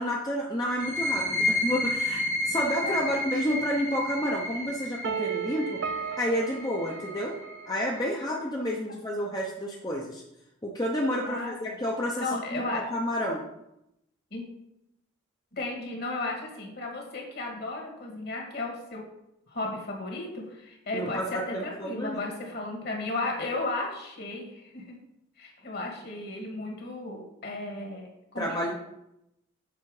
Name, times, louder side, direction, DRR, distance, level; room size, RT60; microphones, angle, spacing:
voice 1, 0.0-5.8 6.2-7.4 7.7-10.2 10.6-13.4 20.9-22.2 28.4-28.7, equal, 20° left, -2 dB, 0.7 m, -30 dB
sound 1, 0.7-8.1, left 1 dB, 70° left, 1.7 m, -31 dB
sound 2, 5.0-8.0, right 7 dB, 60° right, 0.4 m, -35 dB
voice 2, 12.2-12.8 14.3-14.4 15.5-19.0 19.5-25.0 25.4-28.1 28.3-28.7, left 2 dB, 50° left, 0 dB, 1.8 m, -34 dB
7.0 x 4.7 x 4.8 m, 0.85 s
head